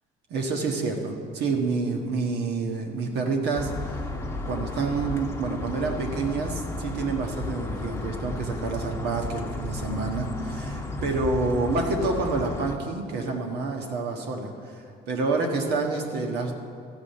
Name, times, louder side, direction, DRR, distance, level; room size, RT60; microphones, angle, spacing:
voice 1, 0.3-4.1 4.4-16.5, right 3 dB, 75° right, 2 dB, 1.5 m, -28 dB
sound 1, 3.5-12.8, left 2 dB, 15° left, 1.0 m, -33 dB
13.0 x 5.0 x 8.5 m, 2.5 s
cardioid pair, 110°, 17 cm